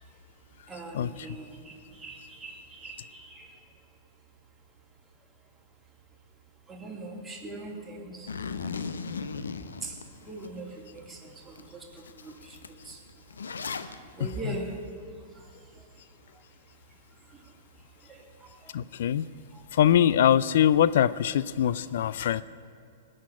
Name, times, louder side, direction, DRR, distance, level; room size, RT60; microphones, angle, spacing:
voice 1, 0.7-3.5 6.7-8.3 9.8-13.0 14.2-14.8 18.1-18.7 19.5-19.6 22.1-22.2, right 2 dB, 10° right, -2 dB, 3.0 m, -41 dB
Zipper (clothing), 8.3-10.5 11.0-11.1 11.6-11.7 11.9-13.9, left 5 dB, 85° left, 0.8 m, -36 dB
voice 2, 18.7-19.3 19.7-22.4, left 10 dB, 65° left, 17 dB, 0.4 m, -22 dB
19.5 x 6.5 x 9.6 m, 2.5 s
hypercardioid pair, 115°, 0 cm